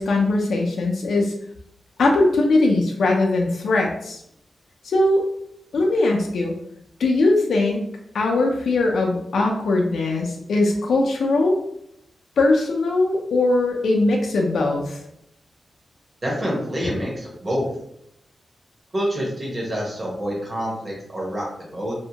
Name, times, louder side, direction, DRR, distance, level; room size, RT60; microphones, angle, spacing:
voice 1, 0.0-1.3 2.0-4.2 4.8-5.2 5.7-6.5 7.0-7.8 8.1-11.6 12.4-15.0, left 2 dB, 80° left, 0 dB, 0.4 m, -20 dB
voice 2, 16.2-17.7 18.9-21.9, equal, 25° right, -4 dB, 0.8 m, -27 dB
2.6 x 2.1 x 2.7 m, 0.76 s
wide cardioid pair, 180°, 0 cm